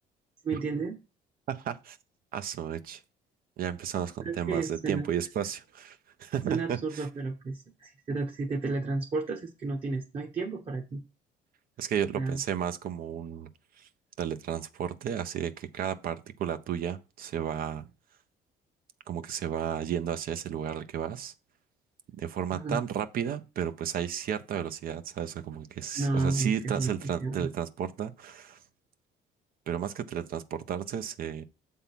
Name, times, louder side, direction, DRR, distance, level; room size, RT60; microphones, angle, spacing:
voice 1, 0.4-1.0 4.2-5.0 6.5-11.0 12.1-12.4 22.5-22.8 26.0-26.9 27.2-27.5, right 3 dB, 35° right, 1.2 m, -32 dB
voice 2, 1.5-2.0 2.3-3.0 3.6-7.1 11.8-13.5 13.8-13.9 14.2-17.9 19.1-21.3 22.1-28.6 29.7-31.4, right 9 dB, 60° right, 0.8 m, -33 dB
7.1 x 3.8 x 5.8 m
cardioid pair, 110°, 17 cm